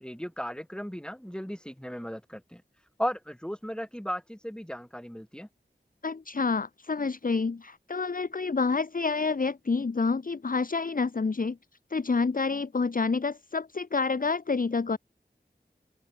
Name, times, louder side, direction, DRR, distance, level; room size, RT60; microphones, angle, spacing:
voice 1, 0.0-2.6 3.0-5.5, equal, 5° left, 2.7 m, -36 dB
voice 2, 6.0-11.6 11.9-15.0, left 4 dB, 50° left, 0.6 m, -28 dB
wide cardioid pair, 45°, 19 cm